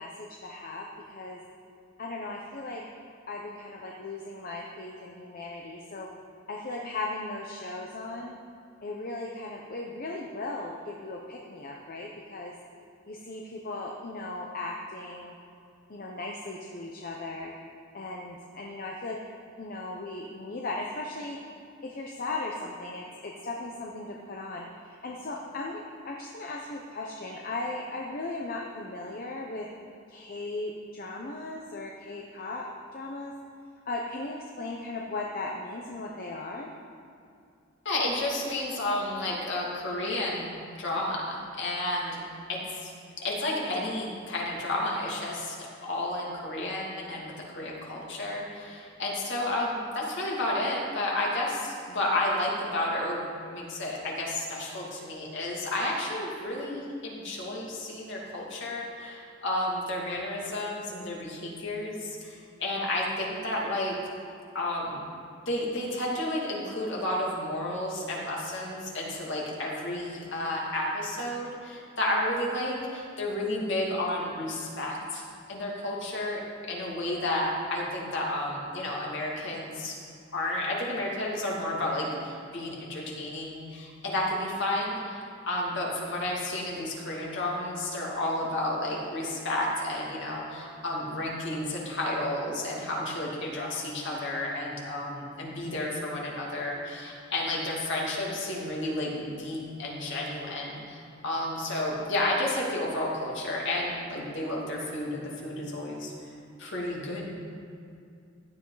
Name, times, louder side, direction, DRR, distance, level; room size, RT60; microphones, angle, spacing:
voice 1, 0.0-1.4 2.0-2.8 3.3-6.1 6.5-8.3 8.8-12.5 13.1-15.3 15.9-17.5 17.9-19.2 19.6-21.4 21.8-29.7 30.1-32.6 32.9-33.3 33.9-36.7, left 2 dB, 45° left, -1 dB, 0.9 m, -37 dB
voice 2, 37.8-42.2 42.5-42.9 43.2-64.0 64.5-65.0 65.5-75.2 75.5-80.0 80.3-106.1 106.6-107.3, left 1 dB, 65° left, -3 dB, 2.7 m, -31 dB
15.5 x 11.0 x 4.1 m, 2.4 s
head